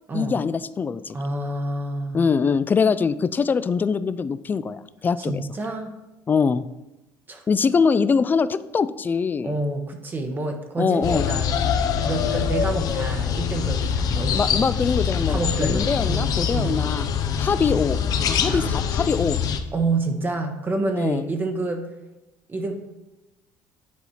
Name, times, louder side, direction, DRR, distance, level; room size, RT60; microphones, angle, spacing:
voice 1, 0.1-1.2 2.1-5.4 6.3-6.7 7.5-9.6 10.8-11.3 14.3-17.1 17.4-18.0 18.3-19.4 20.9-21.3, left 5 dB, 25° left, 14 dB, 0.3 m, -23 dB
voice 2, 1.1-2.3 5.3-5.9 7.3-7.4 9.4-14.6 15.3-16.8 18.4-18.7 19.7-21.9 22.5-22.7, right 2 dB, 25° right, 4 dB, 0.9 m, -28 dB
sound 1, 11.0-19.6, left 7 dB, 55° left, 0.6 m, -24 dB
9.6 x 4.1 x 4.3 m, 1.0 s
cardioid pair, 105°, 7 cm